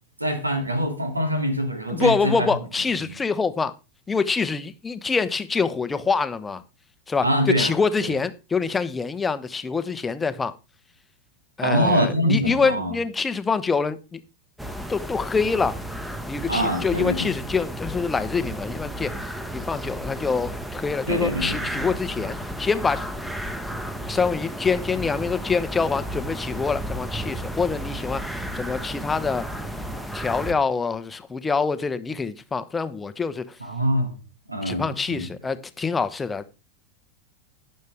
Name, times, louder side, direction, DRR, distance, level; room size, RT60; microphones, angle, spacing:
voice 1, 0.2-2.3 3.0-3.1 7.2-7.7 11.6-12.9 16.5-17.3 21.1-21.8 33.6-34.2 34.5-35.3, equal, 85° right, 2.4 m, -24 dB
voice 2, 1.9-3.7 4.1-6.6 7.1-10.5 11.6-14.2 14.9-15.8 16.2-23.0 24.1-29.4 30.1-33.4 34.6-36.5, left 5 dB, 15° left, 0.9 m, -25 dB
sound 1, 14.6-30.5, equal, 5° right, 1.2 m, -33 dB
17.0 x 6.6 x 3.4 m
figure-of-eight pair, 90°, 0 cm